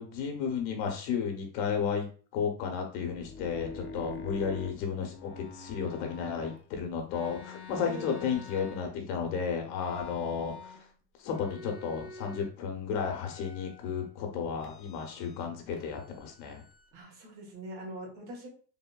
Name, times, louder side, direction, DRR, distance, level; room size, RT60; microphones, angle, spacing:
voice 1, 0.0-10.9 11.2-16.6, left 6 dB, 80° left, 3 dB, 0.9 m, -33 dB
sound 1, 3.0-6.6 7.1-9.2 9.7-10.9 11.2-12.5 12.9-14.1 14.6-15.5 15.7-16.9, left 3 dB, 30° left, 0.3 m, -47 dB
voice 2, 7.9-8.2 16.9-18.5, right 1 dB, 80° right, -1 dB, 1.4 m, -43 dB
3.4 x 2.1 x 2.2 m, 0.40 s
supercardioid pair, 115°, 50 cm